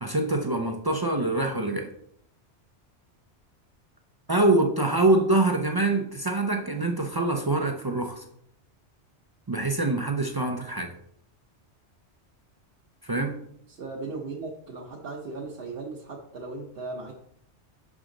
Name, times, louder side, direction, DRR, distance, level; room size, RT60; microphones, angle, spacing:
voice 1, 0.0-1.9 4.3-8.2 9.5-10.9 13.0-13.4, right 2 dB, 40° right, 3 dB, 0.3 m, -25 dB
voice 2, 13.7-17.1, right 3 dB, 60° right, -1 dB, 1.0 m, -37 dB
6.2 x 4.9 x 3.8 m, 0.70 s
omnidirectional pair, 1.2 m